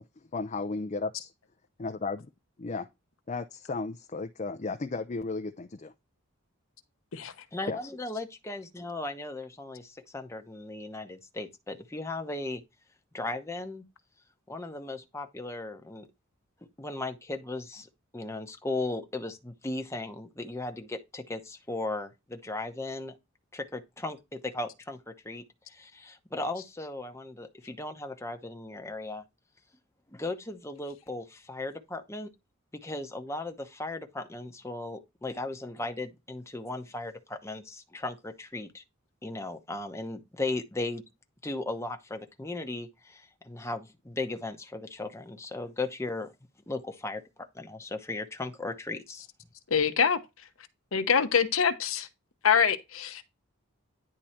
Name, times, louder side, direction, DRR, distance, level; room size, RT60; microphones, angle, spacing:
voice 1, 0.3-1.3 1.8-2.3 2.6-2.9 3.3-5.9 7.7-7.8, left 3 dB, 35° left, 0.5 m, -34 dB
voice 2, 7.5-12.6 13.1-13.8 14.5-16.1 16.8-23.1 23.5-29.2 30.1-32.3 32.7-38.8 39.2-41.0 41.4-46.3 46.7-49.2, left 2 dB, 15° left, 0.9 m, -37 dB
voice 3, 49.7-50.2 50.9-52.1 52.4-53.2, left 6 dB, 70° left, 0.9 m, -24 dB
10.0 x 3.8 x 4.4 m
head